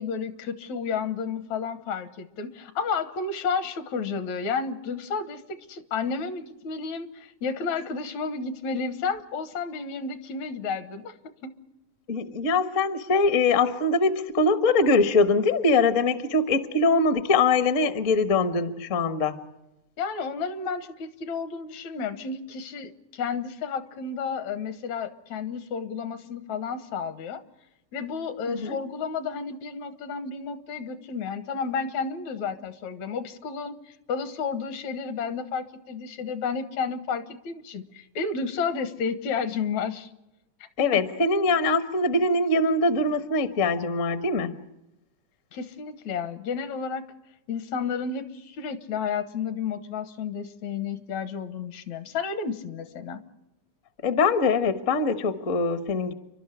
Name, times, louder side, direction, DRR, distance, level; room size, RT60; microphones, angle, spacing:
voice 1, 0.0-11.6 20.0-27.4 27.9-40.1 40.8-41.0 45.5-47.1 47.5-53.2, left 5 dB, 70° left, 12 dB, 2.5 m, -31 dB
voice 2, 12.1-19.4 28.5-28.8 40.8-44.5 54.0-56.1, left 3 dB, 55° left, 11 dB, 0.8 m, -23 dB
29.5 x 12.0 x 9.8 m, 0.93 s
omnidirectional pair, 3.4 m